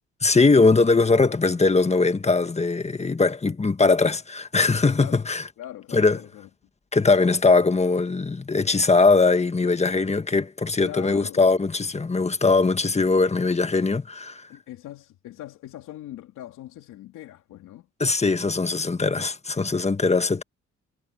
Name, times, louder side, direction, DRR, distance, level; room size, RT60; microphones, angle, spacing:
voice 1, 0.2-5.4 5.9-6.2 6.9-14.4 18.0-20.4, left 3 dB, 20° left, 1.6 m, -21 dB
voice 2, 5.6-6.5 10.8-11.5 14.5-17.9, left 13 dB, 85° left, 2.7 m, -41 dB
cardioid pair, 90°, 30 cm